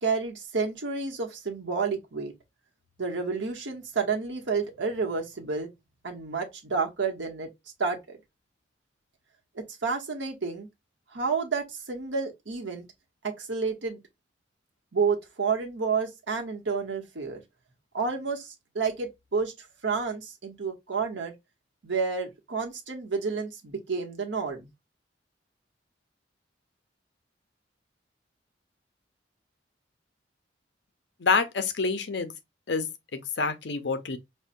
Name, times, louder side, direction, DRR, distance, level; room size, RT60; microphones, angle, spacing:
voice 1, 0.0-2.3 3.0-5.7 6.0-7.5 7.8-8.2 9.5-10.7 11.1-12.9 13.2-14.0 14.9-17.4 17.9-21.3 21.8-24.7, right 5 dB, 80° right, 1.0 m, -30 dB
voice 2, 31.2-32.3 32.7-34.2, left 4 dB, 65° left, 0.6 m, -27 dB
5.4 x 2.2 x 2.6 m
head